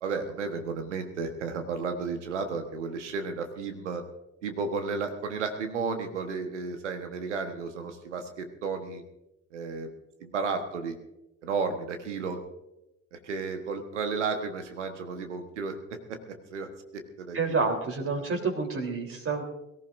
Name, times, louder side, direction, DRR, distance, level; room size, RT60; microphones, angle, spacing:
voice 1, 0.0-4.0 4.4-9.0 9.5-9.9 10.2-10.9 11.4-12.4 13.1-15.8 16.1-16.2 16.5-17.7 18.2-18.3, right 4 dB, 80° right, 7 dB, 1.4 m, -33 dB
voice 2, 17.3-19.4, right 4 dB, 40° right, 3 dB, 3.7 m, -28 dB
22.5 x 14.5 x 2.6 m, 0.90 s
figure-of-eight pair, 45°, 35 cm